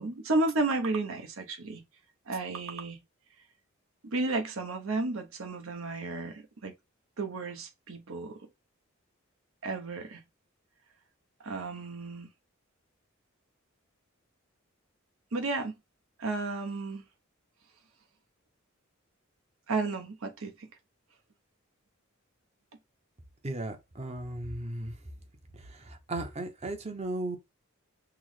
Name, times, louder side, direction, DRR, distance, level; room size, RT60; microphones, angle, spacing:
voice 1, 0.0-1.8 2.3-3.0 4.0-6.7 7.2-8.4 9.6-10.2 11.4-12.3 15.3-15.7 16.2-17.0 19.7-20.7, right 3 dB, 75° right, 0.8 m, -32 dB
voice 2, 23.4-24.9 25.5-27.4, right 2 dB, 30° right, 0.7 m, -36 dB
5.9 x 2.1 x 3.1 m
head